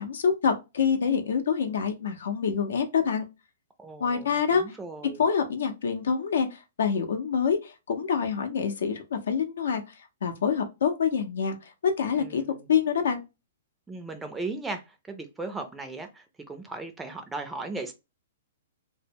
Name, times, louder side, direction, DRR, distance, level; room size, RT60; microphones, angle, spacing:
voice 1, 0.0-3.2 4.0-4.6 5.2-9.8 10.2-12.4 12.7-13.2, left 6 dB, 80° left, 0.6 m, -26 dB
voice 2, 3.8-4.3 4.6-5.2 12.2-12.7 13.9-14.8 15.1-17.9, right 3 dB, 10° right, 0.4 m, -37 dB
2.1 x 2.0 x 3.4 m
hypercardioid pair, 140°, 0 cm